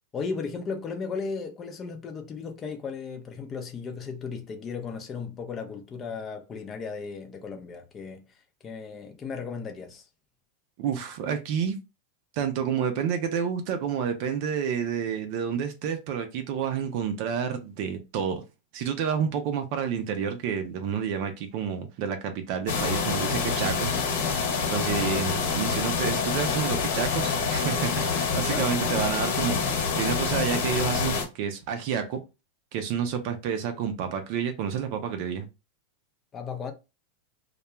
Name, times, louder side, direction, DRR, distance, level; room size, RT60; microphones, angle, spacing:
voice 1, 0.1-8.2 8.6-10.1 28.5-28.7 32.9-33.0 36.3-36.7, left 5 dB, 25° left, 0.5 m, -35 dB
voice 2, 10.8-11.7 12.3-18.4 18.7-32.2 32.7-35.5, right 7 dB, 55° right, 0.5 m, -29 dB
sound 1, 22.7-31.2, left 5 dB, 70° left, 1.2 m, -27 dB
2.3 x 2.2 x 2.9 m
supercardioid pair, 135°, 0 cm